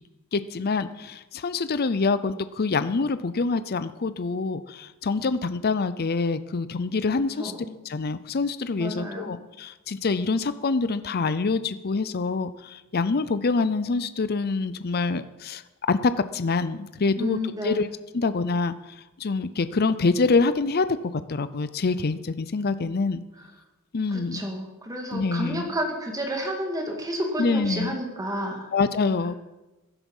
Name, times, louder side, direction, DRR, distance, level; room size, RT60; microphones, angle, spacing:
voice 1, 0.3-7.5 7.8-15.6 15.9-17.4 17.6-17.9 18.1-18.7 19.2-23.2 23.9-24.5 25.1-25.7 27.4-27.9 28.7-29.3, left 4 dB, 45° left, 13 dB, 0.5 m, -25 dB
voice 2, 7.4-7.7 8.8-9.3 17.2-17.8 24.1-28.7, equal, 15° right, 2 dB, 2.2 m, -31 dB
16.0 x 11.0 x 5.5 m, 1.1 s
head